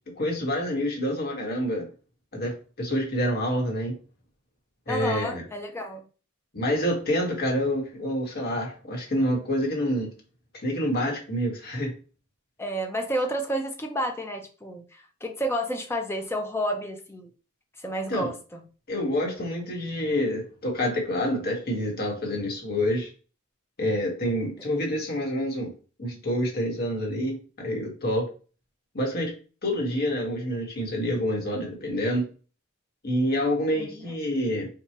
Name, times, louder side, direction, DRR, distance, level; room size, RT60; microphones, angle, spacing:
voice 1, 0.2-1.9 2.3-2.5 2.8-3.9 4.9-5.4 6.5-10.1 10.6-11.9 18.1-18.3 18.9-23.1 23.8-25.7 26.0-28.3 28.9-29.3 29.6-32.3 33.0-34.7, equal, 45° left, 0 dB, 1.2 m, -27 dB
voice 2, 4.9-6.0 12.6-17.3 17.8-18.6 33.8-34.1, equal, 10° left, 3 dB, 0.6 m, -30 dB
4.5 x 2.3 x 2.8 m, 0.36 s
head